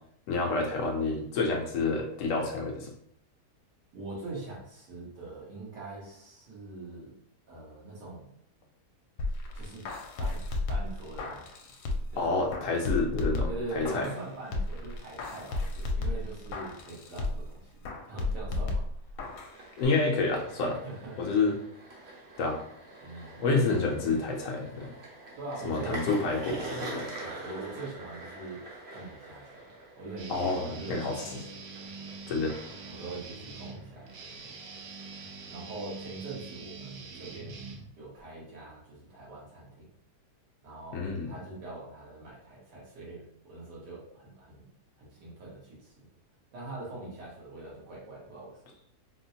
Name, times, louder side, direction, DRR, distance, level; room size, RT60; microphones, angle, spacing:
voice 1, 0.3-2.9 12.2-14.1 19.8-20.8 21.2-21.6 22.4-22.6 23.4-24.9 25.6-27.1 30.3-31.1 32.3-32.5 40.9-41.3, left 3 dB, 65° left, 0 dB, 0.8 m, -28 dB
voice 2, 3.9-7.1 7.5-8.3 9.5-9.8 10.2-11.6 12.1-12.7 13.5-17.7 18.0-18.9 20.8-21.4 23.0-24.2 25.3-26.3 26.9-28.6 28.9-29.6 30.0-31.7 32.9-34.3 35.5-37.7 38.0-39.9 40.6-44.6 45.0-45.9 46.5-48.6, right 2 dB, 85° right, -6 dB, 1.9 m, -43 dB
sound 1, 9.2-12.2 12.5-14.2 14.5-17.5 17.8-19.5 19.8-19.9, left 2 dB, 80° left, 1.1 m, -33 dB
sound 2, 19.3-36.2, right 2 dB, 50° right, 0.8 m, -45 dB
Guitar, 30.2-38.2, right 4 dB, 70° right, 1.0 m, -45 dB
4.2 x 2.1 x 2.7 m, 0.68 s
omnidirectional pair, 1.7 m